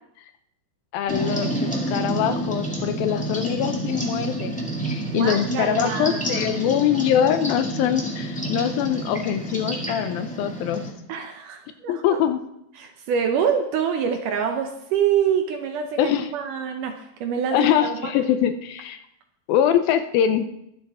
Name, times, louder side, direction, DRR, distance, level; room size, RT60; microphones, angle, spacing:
voice 1, 0.9-10.8 11.9-12.4 16.0-16.3 17.5-19.0 19.5-20.5, left 9 dB, 80° left, 9 dB, 2.4 m, -23 dB
sound 1, 1.1-10.9, right 1 dB, 5° left, 0.8 m, -29 dB
voice 2, 5.0-6.5 11.1-12.2 12.8-18.1, right 7 dB, 75° right, 5 dB, 2.1 m, -26 dB
22.5 x 7.8 x 3.6 m, 0.79 s
omnidirectional pair, 4.4 m